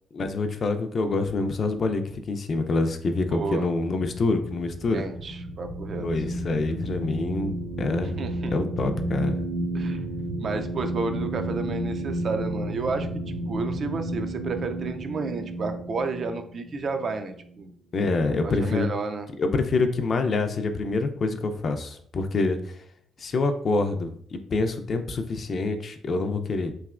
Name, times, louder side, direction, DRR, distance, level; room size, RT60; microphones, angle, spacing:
voice 1, 0.1-5.0 6.0-8.2 8.5-9.4 17.9-18.9 19.4-22.8 23.2-26.7, left 3 dB, 50° left, 7 dB, 0.4 m, -26 dB
voice 2, 3.3-3.7 4.9-6.1 8.2-8.5 9.7-10.0 10.4-17.7 18.4-19.3, right 4 dB, 50° right, 7 dB, 0.4 m, -31 dB
sound 1, 4.2-17.7, right 1 dB, 80° right, 0.7 m, -32 dB
3.2 x 2.8 x 2.4 m, 0.62 s
cardioid pair, 90°, 0 cm